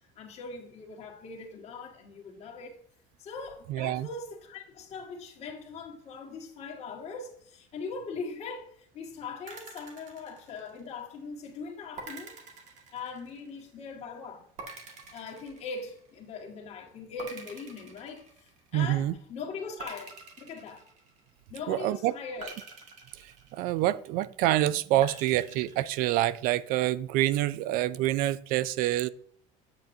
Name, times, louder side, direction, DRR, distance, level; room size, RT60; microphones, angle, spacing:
voice 1, 0.1-2.8 3.2-12.4 12.9-14.4 15.1-20.9 21.5-22.6, left 4 dB, 45° left, 1.8 m, -41 dB
voice 2, 3.7-4.1 18.7-19.1 21.7-22.1 23.1-29.1, right 14 dB, 65° right, 0.4 m, -27 dB
sound 1, 9.5-11.1 12.0-13.6 14.6-16.3 17.2-18.8 19.8-21.5 22.4-24.1 25.0-26.4, right 4 dB, 50° right, 1.9 m, -46 dB
8.5 x 8.0 x 2.7 m
cardioid pair, 140°, 16 cm